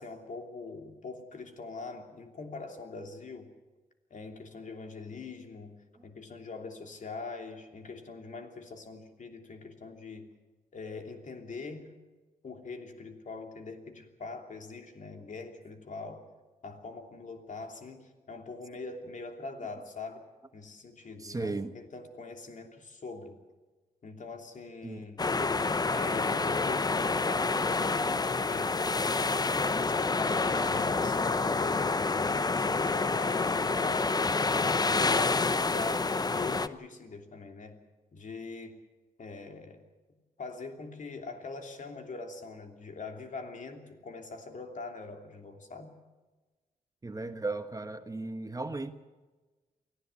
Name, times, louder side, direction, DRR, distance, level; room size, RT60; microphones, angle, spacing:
voice 1, 0.0-3.5 4.1-10.3 10.7-11.9 12.4-16.2 16.6-20.2 20.5-23.4 24.0-25.2 25.9-28.8 29.7-34.1 34.8-37.8 38.1-38.8 39.2-39.8 40.4-45.9, left 3 dB, 55° left, 3.1 m, -43 dB
voice 2, 21.2-21.7 24.8-25.0 47.0-48.9, right 3 dB, 25° right, 1.2 m, -35 dB
sound 1, 25.2-36.7, left 3 dB, 25° left, 0.8 m, -28 dB
24.0 x 15.0 x 8.2 m
cardioid pair, 85°, 15 cm